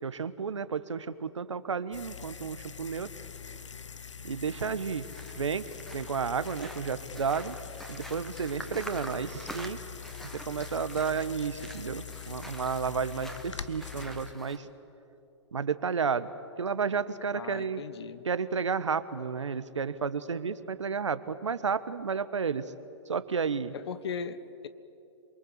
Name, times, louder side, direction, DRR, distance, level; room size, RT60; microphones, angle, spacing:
voice 1, 0.0-3.1 4.2-5.0 5.4-5.7 5.9-7.6 7.9-9.8 10.3-14.7 15.5-16.3 16.6-17.8 18.2-22.7 23.1-23.7, right 6 dB, 80° right, 13 dB, 1.4 m, -32 dB
sound 1, 1.9-14.3, left 7 dB, 80° left, 1.0 m, -43 dB
sound 2, 4.5-14.6, equal, ahead, 1.9 m, -47 dB
voice 2, 17.3-18.3 23.7-24.4, left 6 dB, 60° left, 13 dB, 1.5 m, -38 dB
28.0 x 23.0 x 8.1 m, 2.7 s
hypercardioid pair, 120°, 15 cm